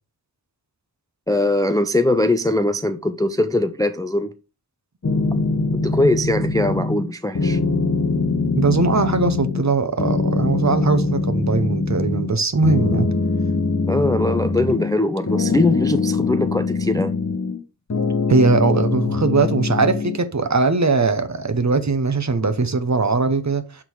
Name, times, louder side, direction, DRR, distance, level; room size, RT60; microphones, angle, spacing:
voice 1, 1.3-4.3 5.7-7.6 13.9-17.2, left 2 dB, 10° left, 0.3 m, -21 dB
sound 1, 5.0-7.1 7.4-9.7 10.0-12.3 12.6-15.0 15.3-17.6 17.9-20.2, left 3 dB, 40° left, 0.9 m, -22 dB
voice 2, 8.6-13.1 18.3-23.8, right 4 dB, 45° right, 0.8 m, -20 dB
6.4 x 3.7 x 4.4 m
wide cardioid pair, 70°, 41 cm